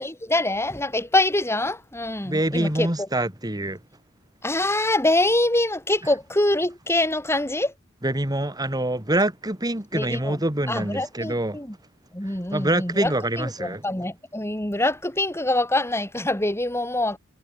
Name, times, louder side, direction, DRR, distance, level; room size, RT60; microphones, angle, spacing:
voice 1, 0.0-3.1 4.4-7.7 9.9-10.4 10.7-11.7 12.1-13.1 13.4-17.2, left 1 dB, 15° left, 5.9 m, -24 dB
voice 2, 2.2-3.8 8.0-11.6 12.2-13.8, right 1 dB, 20° right, 3.0 m, -25 dB
head